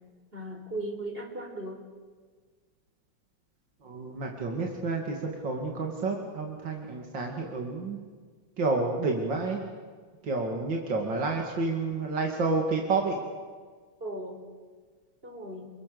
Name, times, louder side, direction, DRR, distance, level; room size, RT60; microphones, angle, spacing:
voice 1, 0.3-1.8 14.0-14.4 15.2-15.7, right 1 dB, 30° right, 1 dB, 5.0 m, -37 dB
voice 2, 3.8-8.0 8.6-9.6 10.2-13.2, right 3 dB, 75° right, 1 dB, 3.2 m, -30 dB
29.5 x 22.0 x 7.0 m, 1.5 s
omnidirectional pair, 2.0 m